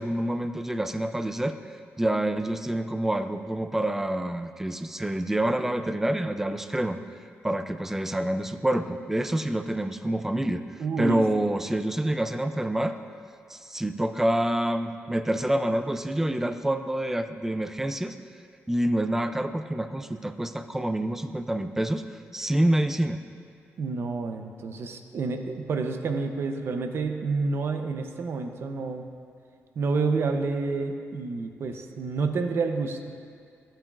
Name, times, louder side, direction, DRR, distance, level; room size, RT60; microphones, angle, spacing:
voice 1, 0.0-1.6 2.0-7.0 7.4-10.6 11.0-13.0 13.5-18.2 18.7-22.0 22.3-23.2, right 1 dB, 5° right, 10 dB, 0.3 m, -27 dB
voice 2, 10.8-11.2 23.8-29.1 29.8-33.1, right 4 dB, 55° right, 6 dB, 0.6 m, -29 dB
14.0 x 8.8 x 2.4 m, 2.3 s
wide cardioid pair, 150°, 5 cm